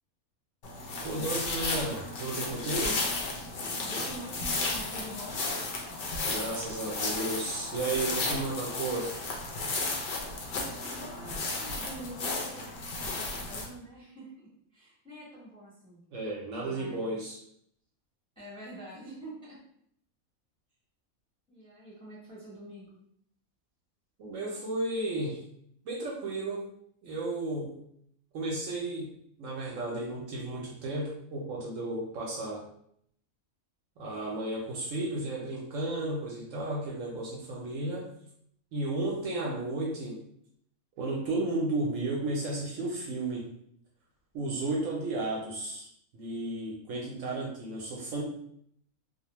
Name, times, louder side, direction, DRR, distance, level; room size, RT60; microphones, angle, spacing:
sound 1, 0.6-13.6, left 3 dB, 70° left, 0.5 m, -34 dB
voice 1, 1.0-3.1 6.1-9.2 16.1-17.4 24.2-25.4 25.9-26.7 27.0-27.8 28.3-29.1 29.4-32.7 34.0-38.1 38.7-40.2 41.0-43.5 44.3-45.9 46.1-48.2, right 2 dB, 70° right, -3 dB, 0.9 m, -33 dB
voice 2, 3.8-5.4 10.8-16.0 16.6-17.1 18.4-19.6 21.5-23.0, right 1 dB, 5° left, -7 dB, 0.7 m, -46 dB
2.6 x 2.0 x 2.9 m, 0.69 s
omnidirectional pair, 1.5 m